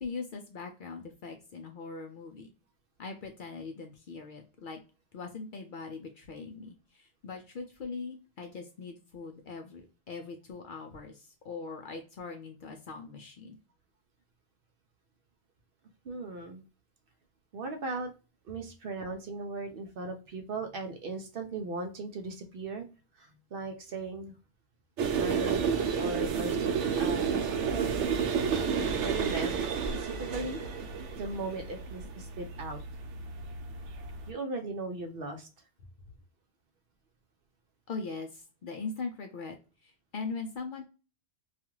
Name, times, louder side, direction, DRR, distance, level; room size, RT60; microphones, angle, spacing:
voice 1, 0.0-2.5 3.0-4.8 5.1-13.6 37.9-39.6 39.8-40.9, left 4 dB, 60° left, 4 dB, 0.6 m, -41 dB
voice 2, 16.1-16.6 17.5-18.1 18.5-22.9 23.2-24.3 25.1-26.7 27.0-28.0 29.0-29.6 29.9-30.6 31.2-32.8 34.3-35.5, right 3 dB, 60° right, 5 dB, 0.6 m, -38 dB
sound 1, 25.0-34.3, right 6 dB, 90° right, 0.9 m, -31 dB
2.4 x 2.3 x 2.9 m, 0.32 s
omnidirectional pair, 1.2 m